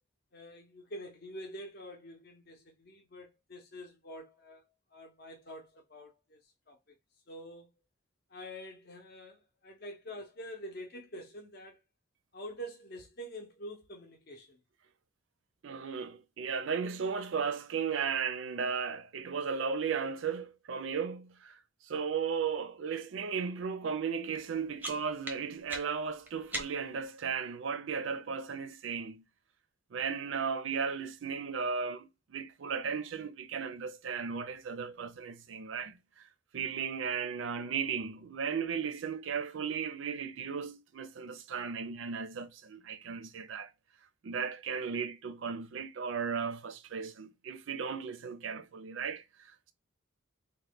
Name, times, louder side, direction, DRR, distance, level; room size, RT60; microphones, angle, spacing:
voice 1, 0.3-4.7 4.9-6.4 6.7-6.8 7.3-7.7 8.3-11.8 12.3-14.6, equal, 50° left, 0.6 m, -46 dB
voice 2, 15.6-21.6 21.9-29.2 29.9-36.0 36.5-43.7 44.2-49.7, right 6 dB, 70° right, 0.4 m, -35 dB
sound 1, 24.4-27.1, right 1 dB, 10° right, 0.5 m, -43 dB
2.9 x 2.2 x 3.4 m
head